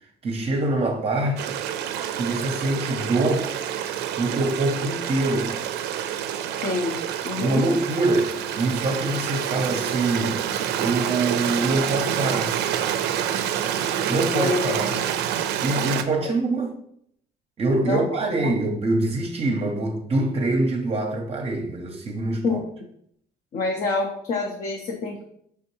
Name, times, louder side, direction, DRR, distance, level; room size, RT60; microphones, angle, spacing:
voice 1, 0.2-1.6 2.1-3.5 4.2-5.6 7.4-10.5 10.8-12.6 14.1-15.0 15.6-16.7 17.6-22.6, right 2 dB, 35° right, 0.6 m, -24 dB
Stream, 1.4-16.0, right 9 dB, 80° right, 0.4 m, -27 dB
voice 2, 6.6-6.9 7.2-7.8 14.1-14.8 17.8-18.1 18.4-18.5 22.4-22.6 23.5-25.3, left 3 dB, 55° left, 0.7 m, -27 dB
4.5 x 3.5 x 3.0 m
cardioid pair, 110°, 17 cm